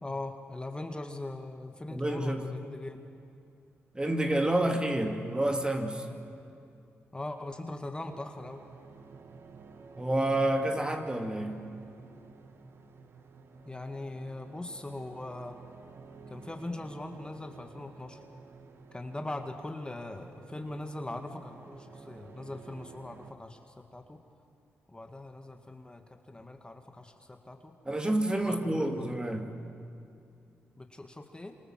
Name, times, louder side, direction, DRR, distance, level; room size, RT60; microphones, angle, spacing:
voice 1, 0.0-3.0 7.1-8.6 13.7-15.6 16.3-18.2 18.9-24.2 24.9-27.7 28.4-29.1 30.8-31.5, left 2 dB, 20° left, 5 dB, 1.9 m, -41 dB
voice 2, 1.9-2.4 3.9-6.1 10.0-11.7 27.8-29.6, right 1 dB, 20° right, 4 dB, 2.6 m, -29 dB
sound 1, 8.0-23.3, right 4 dB, 55° right, 1.8 m, -52 dB
27.0 x 25.5 x 7.6 m, 2.5 s
cardioid pair, 65°, 5 cm